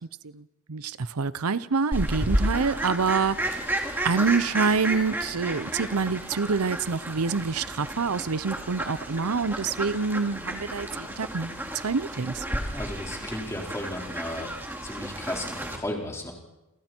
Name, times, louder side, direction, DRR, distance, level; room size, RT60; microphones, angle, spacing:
voice 1, 0.3-3.7 4.0-12.4, right 5 dB, 90° right, 0.7 m, -27 dB
Fowl, 1.9-15.8, right 1 dB, 10° right, 2.8 m, -32 dB
voice 2, 12.7-14.5 14.8-16.3, left 1 dB, 15° left, 4.7 m, -34 dB
29.5 x 27.5 x 4.5 m
head